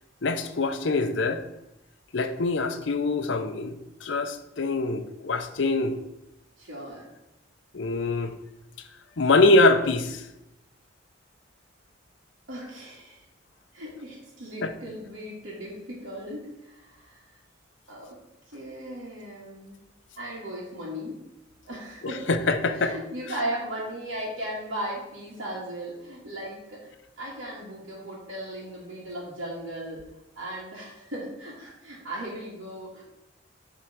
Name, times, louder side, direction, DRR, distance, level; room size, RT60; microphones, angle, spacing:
voice 1, 0.2-1.4 2.1-6.0 7.7-8.3 9.2-10.2 14.6-14.7 22.3-23.0, left 2 dB, 70° left, 9 dB, 0.6 m, -24 dB
voice 2, 6.6-7.1 12.5-13.3 13.7-17.4 17.9-18.2 18.5-19.8 20.2-21.2 21.7-22.3 22.7-26.9 27.2-30.0 30.4-33.0, right 1 dB, 85° right, -8 dB, 1.9 m, -37 dB
7.6 x 3.7 x 6.1 m, 0.90 s
head